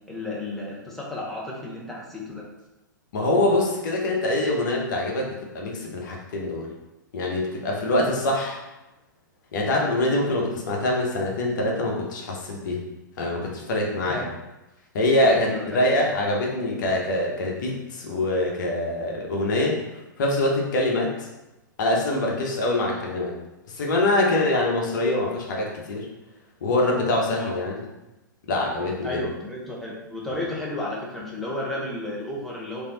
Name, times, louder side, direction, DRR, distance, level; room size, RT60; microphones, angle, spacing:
voice 1, 0.1-2.5 7.8-8.1 14.1-14.3 15.3-15.9 27.3-27.6 29.0-32.9, left 1 dB, ahead, -5 dB, 0.9 m, -33 dB
voice 2, 3.1-6.7 7.1-8.6 9.5-12.8 13.2-14.2 14.9-19.8 20.2-21.3 21.8-23.3 23.7-26.1 26.6-27.8 28.5-29.2 30.3-30.4, left 1 dB, 65° left, -1 dB, 1.0 m, -24 dB
3.4 x 2.8 x 3.8 m, 0.98 s
hypercardioid pair, 110°, 11 cm